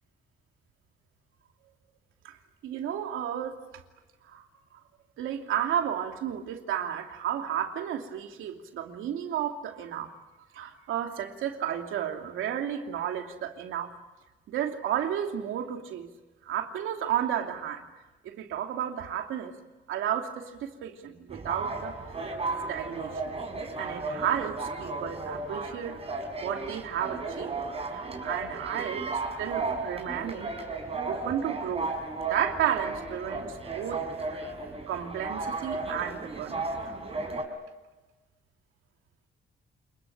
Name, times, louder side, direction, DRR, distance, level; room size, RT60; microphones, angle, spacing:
voice 1, 2.6-3.5 4.2-4.8 5.2-10.1 10.5-13.9 14.5-16.1 16.4-17.8 18.2-19.5 19.9-22.0 22.7-23.3 23.8-27.6 27.9-30.6 31.0-31.9 32.3-34.4 34.9-37.0, right 9 dB, 85° right, 4 dB, 2.8 m, -32 dB
sound 1, 21.3-37.4, right 3 dB, 30° right, 5.1 m, -34 dB
28.5 x 21.0 x 8.8 m, 1.1 s
cardioid pair, 90°, 20 cm